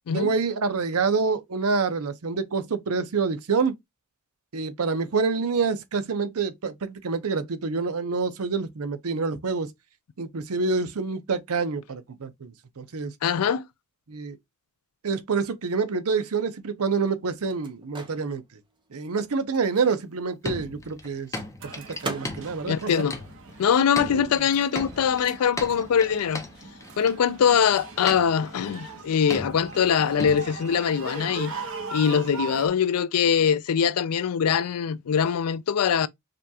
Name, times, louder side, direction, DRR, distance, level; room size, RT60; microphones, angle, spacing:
voice 1, 0.1-3.7 4.5-9.7 10.2-13.1 14.1-14.4 15.0-18.4 18.9-21.3 21.7-22.9 24.1-24.2, right 4 dB, 85° right, 0.7 m, -27 dB
voice 2, 13.2-13.7 22.7-23.2 23.6-26.5 27.0-31.5 31.9-36.1, left 7 dB, 85° left, 0.4 m, -23 dB
Microwave oven, 16.2-24.2 24.5-26.4, right 3 dB, 20° right, 0.7 m, -43 dB
sound 1, 20.4-23.6 24.0-27.1 28.1-28.7 29.3-29.9 30.2-30.8, left 2 dB, 15° left, 0.7 m, -36 dB
sound 2, 21.6-32.7, right 3 dB, 65° right, 1.1 m, -40 dB
5.0 x 2.4 x 2.7 m
head